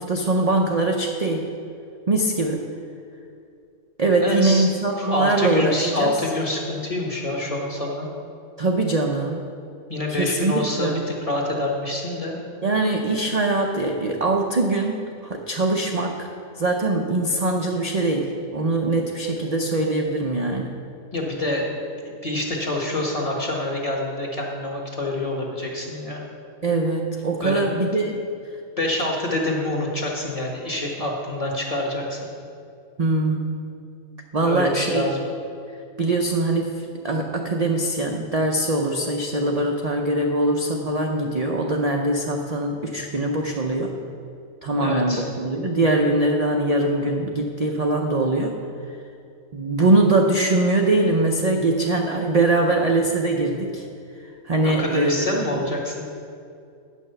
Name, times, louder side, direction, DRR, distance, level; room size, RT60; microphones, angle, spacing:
voice 1, 0.0-1.5 2.1-2.6 4.0-6.1 8.6-9.5 10.2-10.5 10.8-11.0 12.6-16.3 16.6-20.7 26.6-28.2 33.0-33.7 34.3-35.1 36.0-43.9 44.6-48.5 49.5-53.8 54.5-55.7, right 2 dB, 40° right, 1 dB, 0.6 m, -22 dB
voice 2, 4.2-4.7 5.0-8.1 9.9-12.4 21.1-21.7 22.0-26.2 27.4-27.6 28.8-32.2 34.4-35.2 44.8-45.2 54.6-56.0, left 1 dB, 25° left, -1 dB, 1.5 m, -26 dB
10.0 x 6.1 x 6.7 m, 2.5 s
omnidirectional pair, 1.4 m